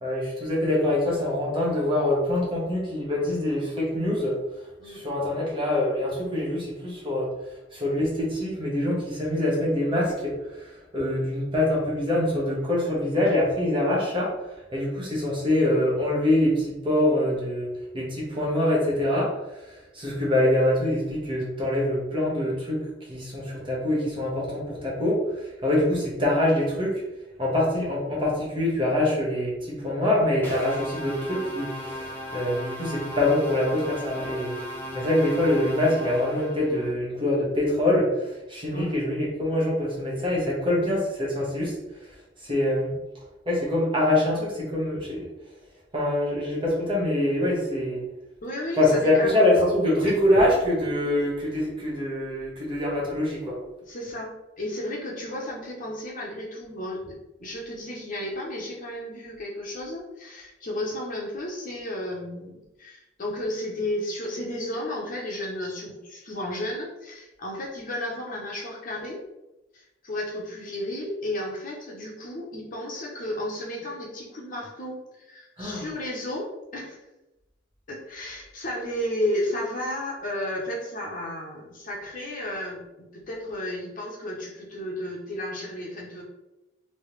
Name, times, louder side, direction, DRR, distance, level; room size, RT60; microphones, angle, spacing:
voice 1, 0.0-4.4 4.9-7.3 7.7-14.3 14.7-17.7 17.9-19.3 19.6-22.8 23.1-27.0 27.4-34.6 34.9-41.7 42.4-42.9 43.5-45.2 45.9-48.0 48.8-53.6 75.6-75.8, left 1 dB, 30° right, -5 dB, 1.2 m, -24 dB
sound 1, 30.4-36.9, equal, 10° left, 0.7 m, -37 dB
voice 2, 48.4-49.3 50.0-50.1 51.2-51.3 53.8-69.2 69.7-77.0 77.9-86.2, left 1 dB, 45° left, -2 dB, 0.8 m, -33 dB
3.3 x 2.9 x 3.2 m, 0.97 s
head